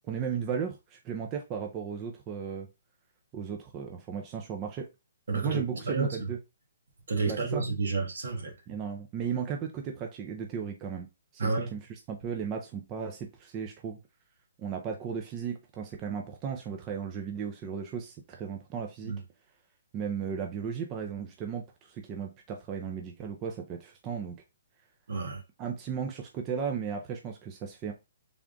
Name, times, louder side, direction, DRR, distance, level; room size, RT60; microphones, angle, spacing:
voice 1, 0.1-2.7 3.3-4.9 5.3-6.4 7.3-7.6 8.7-11.1 11.3-14.0 14.6-19.1 19.9-24.4 25.6-27.9, right 7 dB, 25° right, 0.6 m, -35 dB
voice 2, 5.3-5.6 5.8-6.3 7.1-8.5 11.4-11.7 19.1-19.2 25.1-25.4, right 3 dB, 75° right, 1.5 m, -30 dB
3.5 x 2.4 x 3.8 m
hypercardioid pair, 145°, 0 cm